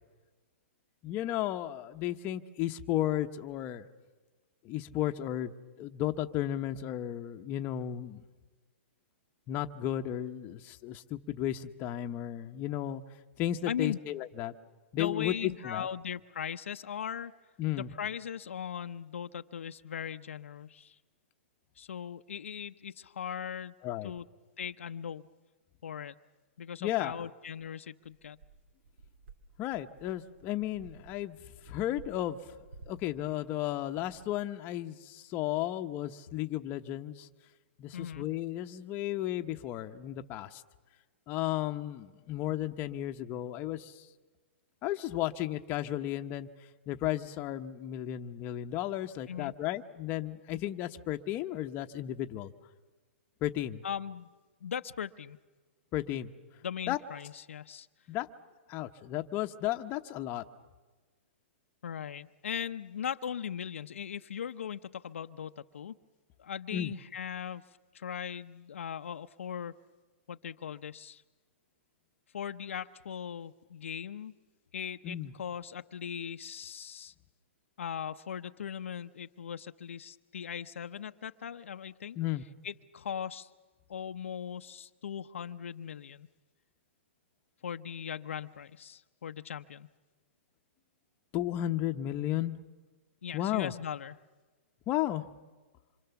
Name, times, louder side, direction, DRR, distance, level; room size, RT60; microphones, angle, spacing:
voice 1, 1.0-3.9 4.6-5.5 5.8-8.2 9.5-13.0 13.4-14.5 14.9-15.9 17.6-17.9 23.8-24.1 26.8-27.2 29.6-31.4 31.6-32.4 32.9-37.3 37.8-40.6 41.3-44.1 44.8-46.5 46.9-52.5 53.4-53.8 55.9-56.3 56.9-57.0 58.1-58.3 58.7-60.4 66.7-66.9 75.0-75.3 82.2-82.4 91.3-92.6 93.3-93.7 94.9-95.2, left 13 dB, 30° left, 6 dB, 1.0 m, -34 dB
voice 2, 13.7-14.0 14.9-17.3 17.7-21.0 21.8-23.7 24.0-24.3 24.6-25.3 25.8-26.2 26.6-28.4 37.9-38.3 49.3-49.5 53.8-54.3 54.6-55.4 56.6-57.9 61.8-66.0 66.4-67.6 67.9-69.7 70.3-71.2 72.3-74.3 74.7-77.1 77.8-82.2 82.6-83.5 83.9-86.3 87.6-89.9 93.2-94.2, left 8 dB, 80° left, 8 dB, 0.8 m, -39 dB
sound 1, 28.0-34.4, right 3 dB, 65° right, 2.6 m, -55 dB
26.5 x 26.0 x 7.1 m, 1.3 s
hypercardioid pair, 140°, 7 cm